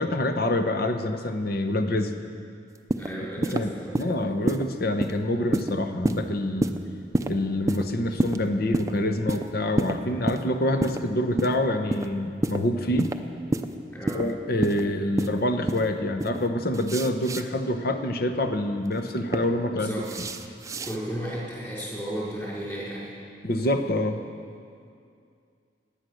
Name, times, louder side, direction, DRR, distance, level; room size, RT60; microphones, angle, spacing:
voice 1, 0.0-2.1 3.4-6.7 7.3-13.1 14.1-19.9 23.4-24.2, left 1 dB, 60° left, 7 dB, 1.0 m, -26 dB
sound 1, 2.7-3.1 3.4-3.6 3.9-4.1 4.5-4.6 5.0-5.2 5.5-5.7 6.0-6.2 6.6-6.8 7.1-7.3 7.7-7.8 8.2-8.4 8.7-8.9 9.3-9.4 9.8-9.9 10.3-10.4 10.8-11.0 11.4-11.6 11.9-12.1 12.4-12.6 13.0-13.2 13.5-13.7 14.1-14.2 14.6-14.8 15.2-15.3 15.7-15.9 16.2-16.4 16.7-17.4 18.8-19.4 20.0-21.0, right 1 dB, 20° right, 0.5 m, -26 dB
voice 2, 3.0-4.1 13.9-14.2 19.7-20.1 20.8-23.1, right 1 dB, 15° left, -7 dB, 4.7 m, -34 dB
16.5 x 10.0 x 6.4 m, 2.3 s
head